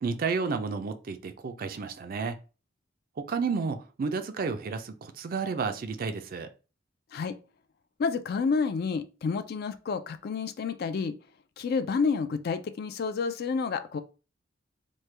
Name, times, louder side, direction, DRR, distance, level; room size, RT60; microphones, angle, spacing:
voice 1, 0.0-2.4 3.2-6.5, right 5 dB, 50° right, 0.4 m, -31 dB
voice 2, 8.0-11.1 11.6-14.0, left 5 dB, 55° left, 0.3 m, -29 dB
3.1 x 2.2 x 3.2 m
head